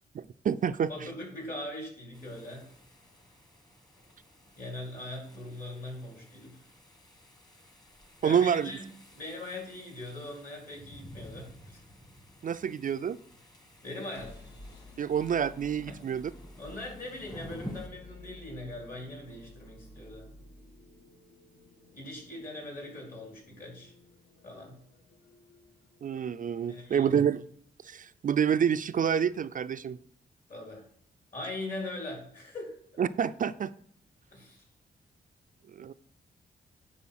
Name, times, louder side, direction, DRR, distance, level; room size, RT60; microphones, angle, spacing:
voice 1, 0.1-0.9 8.2-8.7 12.4-13.2 15.0-16.3 26.0-27.4 27.8-30.0 33.0-33.7 35.7-35.9, right 8 dB, 50° right, 12 dB, 0.4 m, -28 dB
voice 2, 0.9-2.7 4.6-6.6 8.2-8.9 9.1-11.8 13.8-14.4 15.9-16.0 16.6-20.3 21.9-23.9 24.4-24.7 26.7-27.1 30.5-30.9 31.3-33.0 34.3-34.6, left 1 dB, 50° left, -1 dB, 3.9 m, -41 dB
po burzy, 2.1-17.9, equal, 20° left, 1.5 m, -51 dB
sound 1, 14.1-27.7, left 2 dB, 70° left, 2.1 m, -53 dB
9.8 x 4.1 x 5.9 m, 0.64 s
cardioid pair, 90°, 18 cm